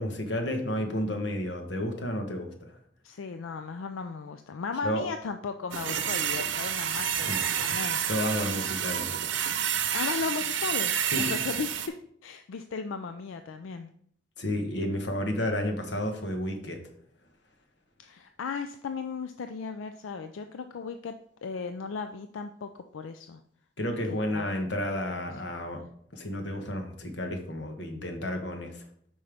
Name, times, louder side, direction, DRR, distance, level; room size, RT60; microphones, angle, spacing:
voice 1, 0.0-2.7 4.8-5.0 7.3-7.4 7.7-7.8 8.1-9.1 11.1-11.4 14.4-16.8 23.8-25.8 26.1-28.8, left 1 dB, 65° left, 4 dB, 1.2 m, -31 dB
voice 2, 3.0-8.0 9.9-12.0 12.2-13.9 18.0-21.1 21.4-23.4 24.1-24.7 25.1-25.3 25.8-25.9, left 5 dB, 90° left, 8 dB, 0.4 m, -36 dB
sound 1, 5.7-11.9, right 9 dB, 75° right, 0.7 m, -29 dB
8.6 x 5.4 x 3.4 m, 0.66 s
head